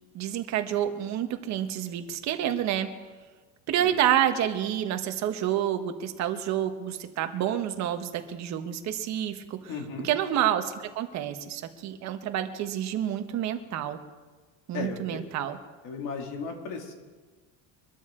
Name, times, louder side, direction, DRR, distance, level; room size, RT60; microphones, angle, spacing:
voice 1, 0.1-2.9 3.7-9.7 10.0-14.0 14.7-15.6, right 11 dB, 40° right, 7 dB, 1.2 m, -28 dB
voice 2, 9.7-10.1 14.7-15.2 15.8-16.9, left 5 dB, 45° left, 2 dB, 2.6 m, -35 dB
23.5 x 13.0 x 3.8 m, 1.3 s
cardioid pair, 170°, 41 cm